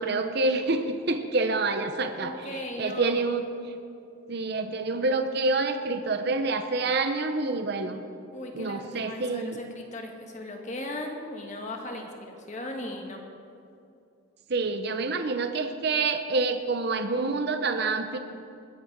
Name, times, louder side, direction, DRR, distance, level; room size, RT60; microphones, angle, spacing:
voice 1, 0.0-2.3 2.8-3.7 4.3-8.0 8.5-9.6 14.5-18.2, right 3 dB, 50° right, 7 dB, 0.7 m, -27 dB
voice 2, 2.2-3.2 8.3-13.2, left 1 dB, 35° left, 2 dB, 1.5 m, -37 dB
21.0 x 7.6 x 6.0 m, 2.6 s
head